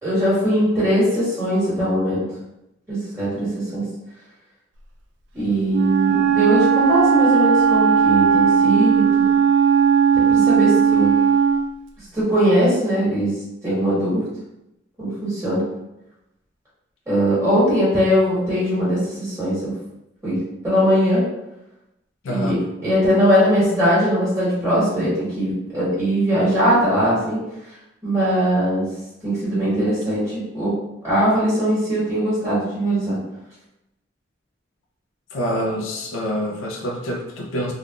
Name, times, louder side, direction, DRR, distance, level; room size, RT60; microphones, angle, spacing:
voice 1, 0.0-2.3 2.9-3.8 5.3-9.2 10.1-11.1 12.1-13.3 13.6-14.2 15.0-15.6 17.1-19.7 20.2-20.4 20.6-21.2 22.3-27.4 28.0-28.9 29.2-30.7 31.0-33.2, equal, 15° right, -10 dB, 1.4 m, -20 dB
Wind instrument woodwind instrument, 5.7-11.7, right 7 dB, 70° right, 0.4 m, -17 dB
voice 2, 22.2-22.6 35.3-37.7, equal, 90° left, 1 dB, 0.4 m, -26 dB
3.5 x 2.2 x 2.4 m, 0.89 s
head